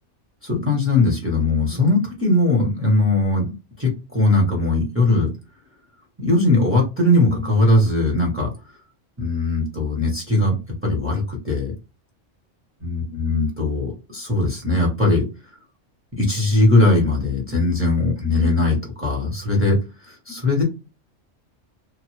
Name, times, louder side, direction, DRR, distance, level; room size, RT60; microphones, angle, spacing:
voice 1, 0.4-5.3 6.2-8.5 9.2-10.6 10.8-11.7 12.8-15.6 16.1-20.6, left 2 dB, 10° right, -1 dB, 1.0 m, -20 dB
2.7 x 2.3 x 3.1 m, 0.28 s
omnidirectional pair, 1.3 m